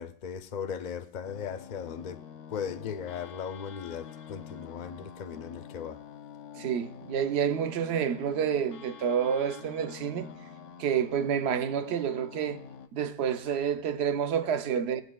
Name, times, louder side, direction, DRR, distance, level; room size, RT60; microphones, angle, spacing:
voice 1, 0.0-2.2 2.5-6.0, left 7 dB, 60° left, 0.4 m, -37 dB
sound 1, 1.2-12.9, left 8 dB, 90° left, 1.0 m, -46 dB
voice 2, 6.5-10.3 10.8-12.6 12.9-15.0, right 8 dB, 65° right, 0.8 m, -29 dB
22.5 x 8.0 x 2.2 m
omnidirectional pair, 1.2 m